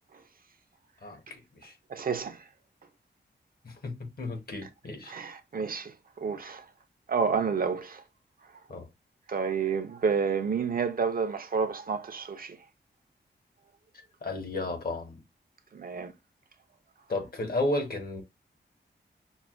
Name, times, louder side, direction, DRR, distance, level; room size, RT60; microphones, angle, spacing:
voice 1, 1.0-1.8 3.6-5.1 8.7-8.9 14.2-15.2 17.1-18.2, left 2 dB, 55° left, 1.0 m, -33 dB
voice 2, 1.9-2.4 5.1-6.6 7.1-8.0 9.3-12.6 15.7-16.1, right 6 dB, 50° right, 0.5 m, -30 dB
6.0 x 2.1 x 2.4 m
wide cardioid pair, 150°, 19 cm